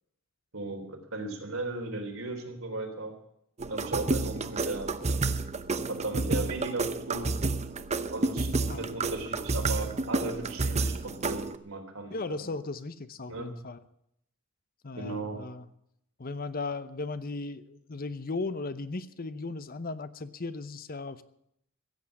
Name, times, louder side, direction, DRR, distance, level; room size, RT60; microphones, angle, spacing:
voice 1, 0.5-3.1 3.7-5.4 5.9-7.4 8.1-12.5 13.3-13.5 15.0-15.4, right 2 dB, 75° right, 2 dB, 3.7 m, -36 dB
sound 1, 3.6-11.6, right 3 dB, 30° right, 0.8 m, -30 dB
voice 2, 12.1-13.8 14.8-15.7 16.2-21.2, left 3 dB, 45° left, 14 dB, 0.8 m, -36 dB
15.5 x 8.3 x 9.9 m, 0.75 s
head